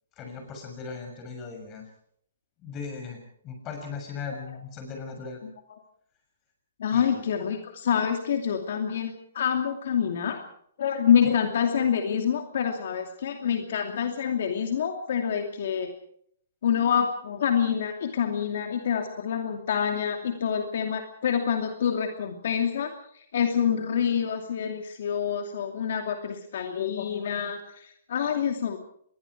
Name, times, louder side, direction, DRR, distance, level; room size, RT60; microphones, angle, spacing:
voice 1, 0.2-1.8 2.6-5.4 6.9-7.2 11.2-11.3, left 5 dB, 20° left, 4 dB, 6.6 m, -38 dB
voice 2, 6.8-10.4 10.8-15.9 16.6-28.8, left 8 dB, 55° left, 4 dB, 2.6 m, -27 dB
27.0 x 21.5 x 4.8 m, 0.66 s
hypercardioid pair, 165°, 0 cm